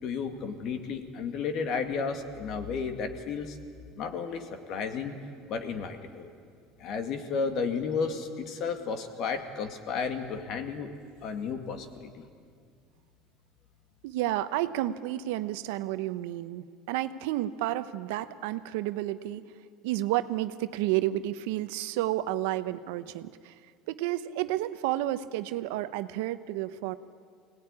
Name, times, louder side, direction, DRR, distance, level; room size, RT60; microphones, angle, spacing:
voice 1, 0.0-3.6 4.0-5.2 5.5-6.3 6.8-10.9 11.2-12.3, left 5 dB, 50° left, 7 dB, 2.2 m, -33 dB
voice 2, 14.0-19.4 19.8-23.5 23.9-27.0, right 14 dB, 80° right, 12 dB, 0.9 m, -31 dB
24.5 x 18.5 x 9.8 m, 2.2 s
supercardioid pair, 130°, 0 cm